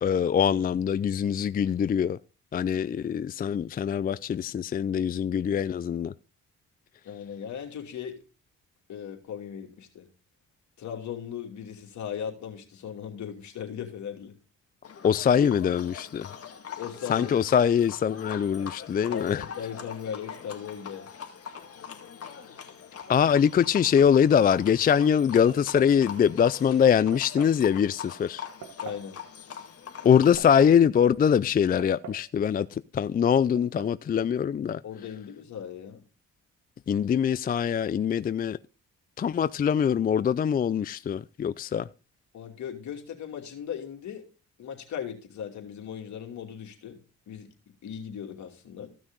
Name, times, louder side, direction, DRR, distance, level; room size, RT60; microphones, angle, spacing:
voice 1, 0.0-2.2 2.5-6.1 15.0-16.3 17.1-19.4 23.1-28.5 30.0-34.8 36.9-38.6 39.2-41.9, left 8 dB, 30° left, 0.4 m, -23 dB
voice 2, 7.0-8.2 8.9-10.1 10.8-14.4 16.8-17.4 19.1-21.1 28.8-29.2 34.8-36.0 42.3-44.2 44.6-47.0 47.3-47.5 47.8-48.9, left 8 dB, 70° left, 2.8 m, -38 dB
Livestock farm animals working animals, 14.8-30.3, left 7 dB, 50° left, 2.1 m, -42 dB
sound 1, 25.5-26.0 27.1-27.6 28.6-29.1 30.1-30.8 31.8-32.3 32.6-32.7 33.6-34.0, right 7 dB, 65° right, 1.4 m, -42 dB
15.0 x 6.3 x 3.9 m
cardioid pair, 90°, 30 cm